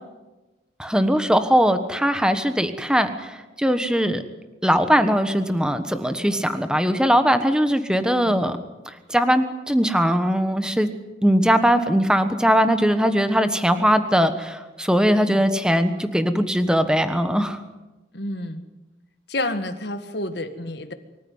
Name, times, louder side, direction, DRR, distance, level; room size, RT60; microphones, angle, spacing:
voice 1, 0.8-4.2 4.6-8.6 8.9-10.9 11.2-17.6, equal, 5° right, 9 dB, 1.2 m, -20 dB
voice 2, 18.1-18.7 19.3-20.9, left 1 dB, 60° left, 8 dB, 1.8 m, -30 dB
25.0 x 14.5 x 9.5 m, 1.1 s
head